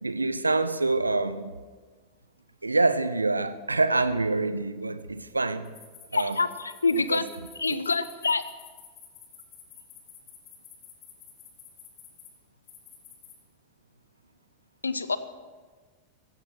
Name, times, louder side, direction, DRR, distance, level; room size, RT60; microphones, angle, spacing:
voice 1, 0.0-1.6 2.6-5.7 6.1-6.4 7.1-7.2 7.7-7.8, right 3 dB, 80° right, 0.8 m, -26 dB
sound 1, 5.6-12.3 12.7-13.3, left 9 dB, 40° left, 3.2 m, -50 dB
voice 2, 6.1-7.2 7.6-8.4 14.8-15.2, left 3 dB, 75° left, 0.8 m, -26 dB
15.5 x 15.5 x 6.1 m
figure-of-eight pair, 90°, 0 cm